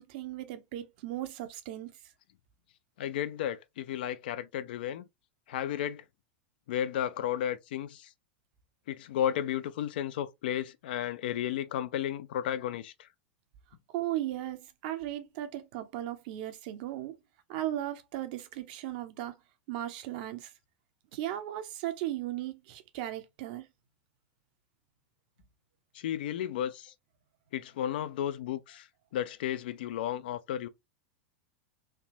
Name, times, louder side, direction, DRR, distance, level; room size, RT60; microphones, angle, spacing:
voice 1, 0.0-1.9 13.9-17.2 17.5-19.3 19.7-20.5 21.1-23.6, right 13 dB, 50° right, 0.7 m, -36 dB
voice 2, 3.0-5.0 5.5-6.0 6.7-8.1 8.9-13.1 25.9-26.9 27.5-28.9 29.1-30.7, left 10 dB, 55° left, 0.4 m, -33 dB
3.3 x 2.8 x 2.8 m
figure-of-eight pair, 85°, 6 cm